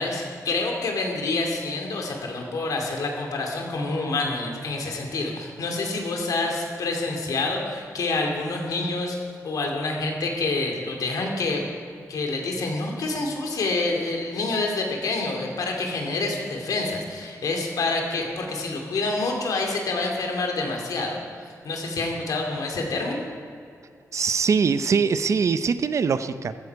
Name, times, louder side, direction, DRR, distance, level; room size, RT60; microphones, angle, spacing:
voice 1, 0.0-9.2 9.4-11.7 12.1-23.2, left 3 dB, 80° left, 1 dB, 2.6 m, -27 dB
voice 2, 24.1-26.6, right 5 dB, 55° right, 12 dB, 0.6 m, -22 dB
15.0 x 13.5 x 4.7 m, 2.4 s
wide cardioid pair, 125°, 6 cm